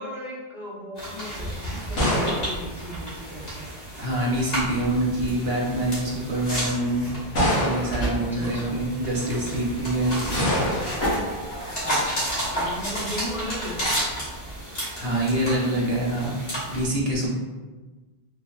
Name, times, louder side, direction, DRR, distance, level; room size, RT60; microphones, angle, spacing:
voice 1, 0.0-3.6 8.3-8.8 11.6-14.2, equal, 5° right, -9 dB, 0.5 m, -36 dB
sound 1, 1.0-16.8, equal, 70° left, 1.4 m, -33 dB
sound 2, 1.4-3.7 4.7-5.2 6.0-6.1 7.3-8.2 10.4-11.1, left 1 dB, 90° left, 1.2 m, -26 dB
voice 2, 4.0-7.1 7.4-10.4 15.0-16.3 16.7-17.4, right 1 dB, 70° right, -4 dB, 1.0 m, -25 dB
sound 3, 4.5-14.6, right 1 dB, 40° left, 1.4 m, -34 dB
2.8 x 2.1 x 2.2 m, 1.3 s
omnidirectional pair, 1.0 m